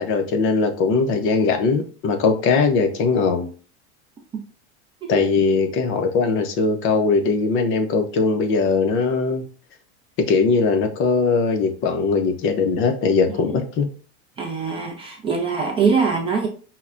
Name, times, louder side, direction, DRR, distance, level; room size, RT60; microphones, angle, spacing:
voice 1, 0.0-3.5 5.1-9.4 10.2-13.9, left 4 dB, 35° left, 0.6 m, -20 dB
voice 2, 14.4-16.5, right 5 dB, 15° right, 0.4 m, -23 dB
5.6 x 2.1 x 2.4 m
supercardioid pair, 140°, 34 cm